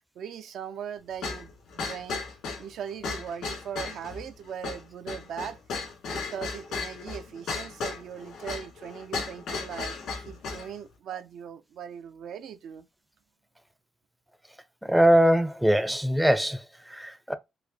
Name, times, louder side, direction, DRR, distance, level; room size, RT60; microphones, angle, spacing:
voice 1, 0.2-2.2 2.6-5.6 6.1-12.9, right 8 dB, 75° right, 0.5 m, -39 dB
sound 1, 1.2-10.7, left 4 dB, 80° left, 2.1 m, -35 dB
voice 2, 14.8-17.3, equal, 5° right, 0.5 m, -22 dB
4.8 x 2.0 x 2.6 m
cardioid pair, 90°, 0 cm